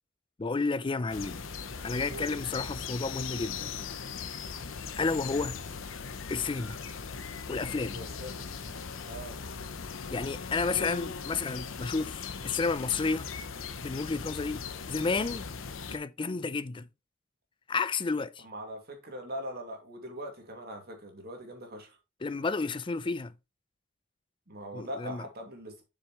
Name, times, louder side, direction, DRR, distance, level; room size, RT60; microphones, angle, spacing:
voice 1, 0.4-1.4 1.8-3.7 5.0-5.6 6.3-6.8 7.5-8.0 9.8-13.3 13.8-15.5 15.9-16.9 17.7-18.4 22.2-23.3 24.7-25.3, left 4 dB, 25° left, 0.4 m, -31 dB
sound 1, 1.1-16.0, left 5 dB, 80° left, 0.8 m, -39 dB
voice 2, 2.1-2.4 7.9-8.7 9.1-9.4 18.4-22.0 24.5-25.8, equal, 55° right, 2.3 m, -41 dB
7.6 x 6.4 x 3.0 m
head